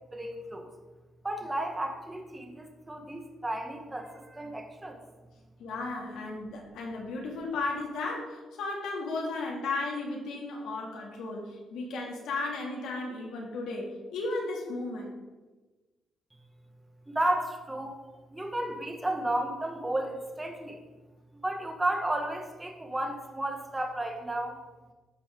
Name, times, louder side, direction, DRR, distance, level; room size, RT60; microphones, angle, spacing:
voice 1, 0.1-0.7 1.2-5.0 17.1-18.0 18.3-20.8 21.4-24.6, right 1 dB, 15° right, 3 dB, 1.6 m, -33 dB
voice 2, 5.6-15.1, left 3 dB, 80° left, -1 dB, 2.3 m, -35 dB
14.0 x 5.5 x 3.8 m, 1.2 s
cardioid pair, 90°, 0 cm